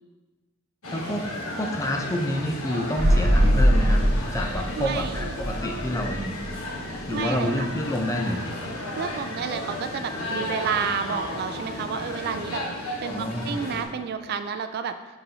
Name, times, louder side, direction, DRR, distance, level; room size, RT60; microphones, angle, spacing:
sound 1, 0.8-13.8, left 1 dB, 85° left, 1.2 m, -34 dB
voice 1, 0.9-1.2 1.6-4.0 4.3-6.4 7.1-8.5 13.1-13.6, equal, 15° left, 2 dB, 0.6 m, -28 dB
sound 2, 3.0-6.7 7.0-7.1, equal, 80° right, 1.6 m, -22 dB
voice 2, 4.8-5.3 7.1-7.7 9.0-15.0, right 6 dB, 50° right, 9 dB, 0.3 m, -30 dB
11.0 x 4.0 x 2.8 m, 1.2 s
head